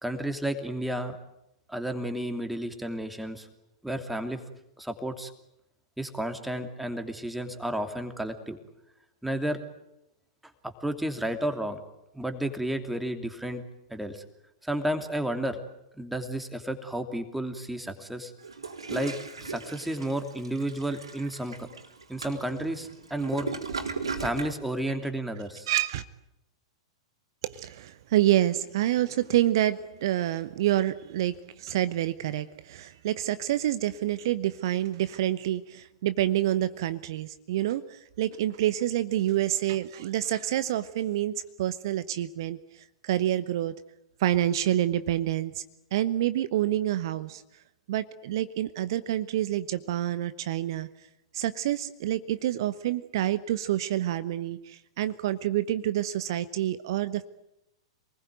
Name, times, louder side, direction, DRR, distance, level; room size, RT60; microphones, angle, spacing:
voice 1, 0.0-1.2 1.7-3.5 3.8-4.4 4.8-5.3 6.0-8.6 9.2-9.6 10.6-11.8 12.1-13.6 13.9-14.2 14.6-15.6 16.0-18.3 18.9-19.1 19.4-21.7 22.1-23.5 24.2-25.7, right 1 dB, 5° right, 6 dB, 2.9 m, -32 dB
Toilet flush, 18.4-24.6, right 4 dB, 70° right, 3.8 m, -37 dB
voice 2, 25.7-26.0 27.4-42.6 43.0-43.7 44.2-45.6 45.9-47.4 47.9-50.9 51.3-57.2, right 13 dB, 50° right, 14 dB, 1.0 m, -27 dB
28.0 x 20.5 x 9.3 m, 0.87 s
figure-of-eight pair, 100°, 3 cm